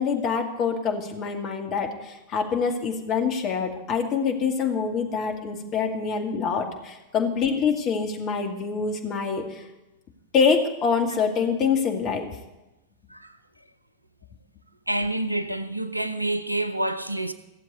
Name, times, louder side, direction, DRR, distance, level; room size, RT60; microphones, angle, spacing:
voice 1, 0.0-9.6 10.3-12.3, left 5 dB, 35° left, 2.4 m, -25 dB
voice 2, 14.9-17.3, right 1 dB, 90° right, 0.8 m, -28 dB
16.0 x 7.7 x 9.4 m
figure-of-eight pair, 90°, 0 cm